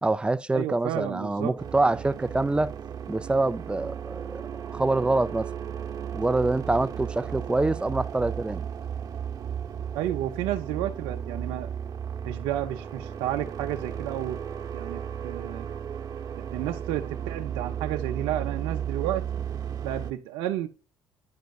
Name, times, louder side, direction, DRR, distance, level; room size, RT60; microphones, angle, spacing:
voice 1, 0.0-2.7 3.1-5.5 6.1-8.6, right 2 dB, 10° right, 0.4 m, -26 dB
voice 2, 0.5-1.5 9.9-11.7 12.2-14.4 14.7-15.7 16.3-19.2 19.8-20.7, right 12 dB, 80° right, 0.6 m, -31 dB
sound 1, 1.6-20.1, right 8 dB, 50° right, 1.0 m, -35 dB
9.4 x 5.2 x 2.4 m
supercardioid pair, 90°, 9 cm